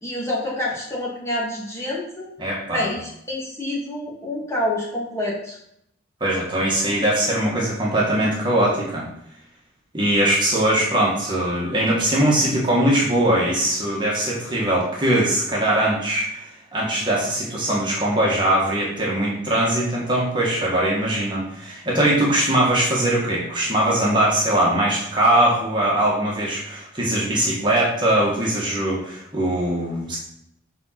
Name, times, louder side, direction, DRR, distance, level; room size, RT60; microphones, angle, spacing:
voice 1, 0.0-2.3 2.7-5.6, left 1 dB, 15° left, -5 dB, 2.0 m, -27 dB
voice 2, 2.4-2.9 6.2-9.1 9.9-30.2, right 1 dB, 25° right, -5 dB, 1.8 m, -21 dB
7.5 x 4.4 x 6.0 m, 0.76 s
head